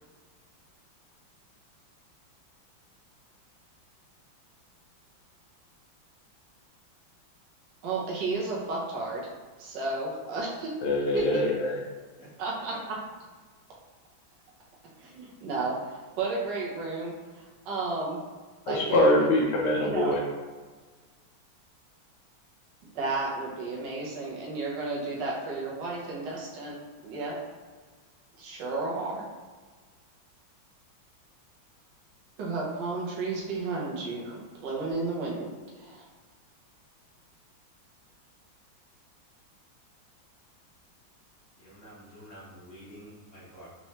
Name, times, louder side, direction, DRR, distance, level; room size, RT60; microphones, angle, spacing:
voice 1, 7.8-9.3 9.6-10.7 11.1-11.5 12.4-12.7 15.0-18.2 18.7-19.1 19.7-20.1 22.9-26.8 27.0-27.4 28.4-29.3 32.4-36.1, right 3 dB, 65° right, -4 dB, 1.4 m, -33 dB
voice 2, 10.8-11.8 18.7-20.2, left 1 dB, 85° left, -4 dB, 1.5 m, -24 dB
voice 3, 41.6-43.7, equal, 45° left, -7 dB, 1.1 m, -48 dB
4.4 x 3.0 x 2.8 m, 1.4 s
omnidirectional pair, 2.2 m